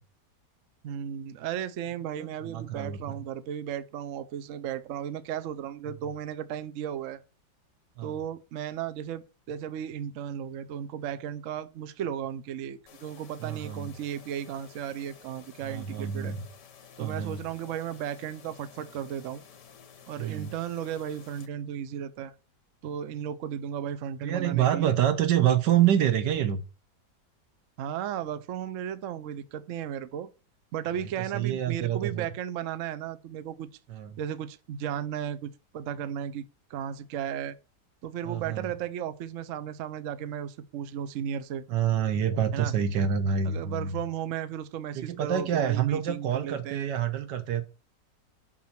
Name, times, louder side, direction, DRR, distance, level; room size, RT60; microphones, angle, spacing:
voice 1, 0.8-7.2 8.0-16.3 17.0-19.5 20.1-22.3 22.8-24.9 27.8-30.3 30.7-33.7 34.2-36.4 36.7-37.6 38.0-41.6 42.5-42.7 43.4-46.9, right 9 dB, 60° right, 0.8 m, -35 dB
voice 2, 2.2-3.2 8.0-8.2 13.4-13.9 15.6-16.4 17.0-17.4 20.2-20.5 24.2-26.6 31.0-32.3 33.9-34.2 38.2-38.7 41.7-44.0 44.9-47.6, right 9 dB, 80° right, 1.5 m, -27 dB
sound 1, 12.9-21.5, left 7 dB, 75° left, 1.7 m, -53 dB
6.2 x 5.7 x 5.8 m
omnidirectional pair, 1.9 m